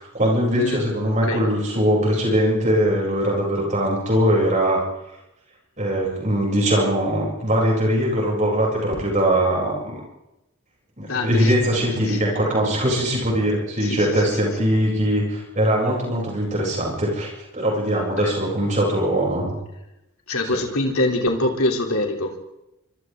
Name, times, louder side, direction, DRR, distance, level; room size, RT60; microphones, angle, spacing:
voice 1, 0.0-4.8 5.8-10.0 11.0-19.5 20.5-20.6, equal, 35° right, -3 dB, 7.8 m, -21 dB
voice 2, 11.1-12.2 13.8-14.1 17.9-18.4 20.3-22.4, left 2 dB, 75° left, 2 dB, 3.5 m, -25 dB
26.5 x 25.0 x 3.9 m, 0.93 s
head